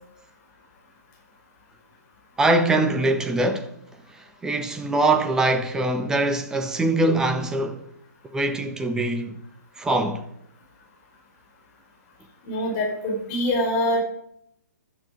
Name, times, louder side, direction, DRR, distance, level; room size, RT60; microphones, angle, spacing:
voice 1, 2.4-3.7 4.4-7.8 8.3-9.4 9.8-10.3, right 2 dB, 5° right, 1.3 m, -23 dB
voice 2, 12.4-14.0, left 1 dB, 30° left, 5.0 m, -24 dB
16.0 x 12.0 x 5.2 m
figure-of-eight pair, 125°, 9 cm